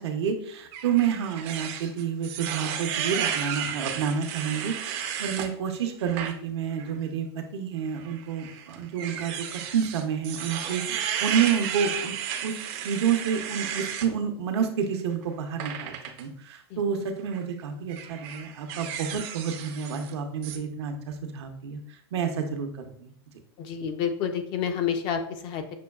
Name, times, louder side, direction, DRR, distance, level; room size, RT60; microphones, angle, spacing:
voice 1, 0.0-12.1 12.4-12.5 12.8-23.1, right 7 dB, 75° right, 5 dB, 0.7 m, -29 dB
sound 1, 0.7-5.5 6.0-6.3 6.8-6.9 8.0-14.1 15.6-16.2 17.2-17.4 17.9-20.1 20.4-20.6, right 9 dB, 40° right, 0.4 m, -33 dB
voice 2, 16.7-17.0 23.6-25.7, left 7 dB, 35° left, 7 dB, 0.4 m, -29 dB
6.0 x 2.3 x 2.3 m, 0.66 s
supercardioid pair, 140°, 14 cm